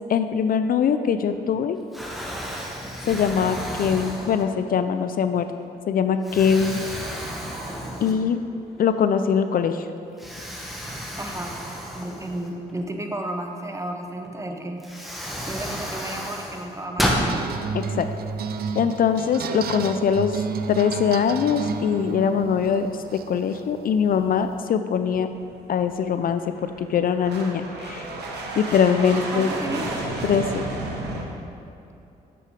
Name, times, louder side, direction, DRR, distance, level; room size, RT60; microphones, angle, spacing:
voice 1, 0.1-1.8 3.1-5.5 5.9-6.8 8.0-8.4 8.8-9.9 17.7-18.1 18.7-20.4 20.7-22.9 23.3-25.3 25.7-26.4 26.8-28.0 28.5-29.5 30.2-30.7, left 7 dB, 55° left, 10 dB, 0.4 m, -22 dB
Explosion, 1.2-1.6 1.9-4.8 5.4-5.5 6.2-8.5 8.8-8.9 10.2-12.8 14.2-14.3 14.8-17.3, equal, ahead, 1.5 m, -31 dB
voice 2, 11.2-11.6 11.9-14.8 15.5-17.4 28.9-29.9, right 1 dB, 15° right, 3 dB, 1.1 m, -33 dB
sound 1, 17.0-24.6, right 5 dB, 65° right, 0.5 m, -32 dB
sound 2, 24.9-31.2, right 2 dB, 80° right, 1.2 m, -33 dB
7.4 x 6.7 x 4.9 m, 2.7 s
supercardioid pair, 55°, 17 cm